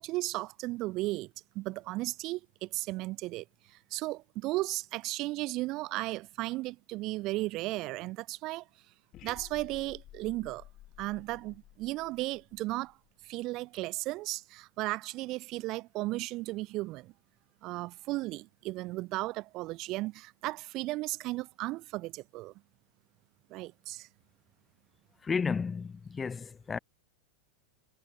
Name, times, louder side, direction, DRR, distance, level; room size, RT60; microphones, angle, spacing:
voice 1, 0.0-8.7 9.2-10.6 11.0-13.0 13.2-17.1 17.6-22.5 23.5-24.1, right 19 dB, 40° right, 0.5 m, -35 dB
sound 1, 9.1-13.2, left 14 dB, 35° left, 2.0 m, -53 dB
voice 2, 25.2-26.8, left 5 dB, 15° left, 0.4 m, -32 dB
figure-of-eight pair, 90°, 0 cm